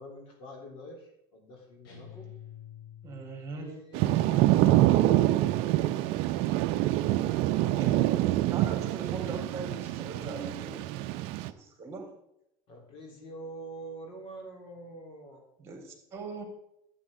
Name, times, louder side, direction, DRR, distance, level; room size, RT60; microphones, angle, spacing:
voice 1, 0.0-2.3 12.7-15.4, right 1 dB, 55° left, 0 dB, 3.4 m, -46 dB
sound 1, 1.8-3.6, left 10 dB, 90° left, 3.6 m, -48 dB
voice 2, 3.0-3.7 7.6-12.1 15.6-16.4, right 3 dB, 25° right, 2 dB, 3.5 m, -41 dB
Thunder / Rain, 3.9-11.5, right 15 dB, 65° right, 0.5 m, -26 dB
11.5 x 8.3 x 3.7 m, 0.79 s
supercardioid pair, 115°, 11 cm